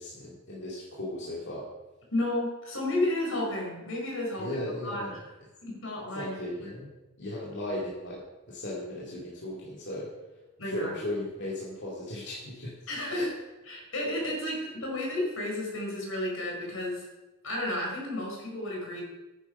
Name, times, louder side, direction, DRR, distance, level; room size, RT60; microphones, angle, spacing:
voice 1, 0.0-1.7 4.4-5.2 6.1-6.9 7.2-10.1 10.6-12.8 13.1-13.3, left 1 dB, 60° left, -6 dB, 2.7 m, -36 dB
voice 2, 2.1-4.5 4.8-5.2 5.6-6.6 10.6-10.9 12.9-13.3 13.7-17.0 17.4-19.0, left 1 dB, 75° left, -1 dB, 4.7 m, -32 dB
10.5 x 10.0 x 5.5 m, 1.1 s
head